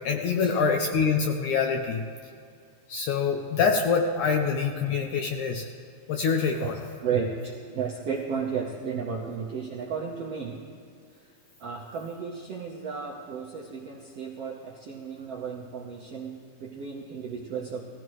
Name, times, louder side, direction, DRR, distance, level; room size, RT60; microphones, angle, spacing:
voice 1, 0.0-2.0 2.9-5.7 6.1-6.8, left 5 dB, 75° left, 3 dB, 1.8 m, -25 dB
voice 2, 6.6-10.6 11.6-17.8, right 6 dB, 75° right, -2 dB, 1.5 m, -33 dB
18.5 x 15.0 x 3.1 m, 2.4 s
omnidirectional pair, 4.2 m